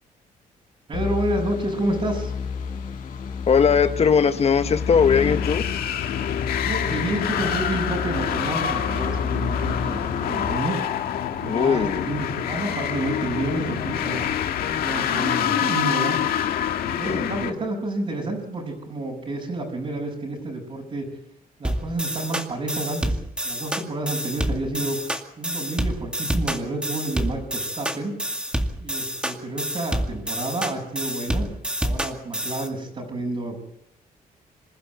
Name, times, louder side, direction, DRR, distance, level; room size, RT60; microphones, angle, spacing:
sound 1, 0.9-10.5, left 5 dB, 60° left, 5.4 m, -31 dB
voice 1, 0.9-2.3 6.7-10.8 11.4-14.3 14.7-16.2 16.8-21.1 21.6-28.1 28.8-31.5 31.8-33.6, right 2 dB, 40° right, -3 dB, 5.9 m, -29 dB
voice 2, 3.5-5.6 11.5-12.0 17.0-17.3, left 6 dB, 45° left, 9 dB, 1.4 m, -19 dB
sound 2, 4.6-17.5, left 9 dB, 85° left, 1.8 m, -26 dB
sound 3, 21.6-32.7, right 1 dB, 5° right, 2.2 m, -28 dB
26.5 x 11.5 x 9.4 m, 0.78 s
cardioid pair, 115°, 15 cm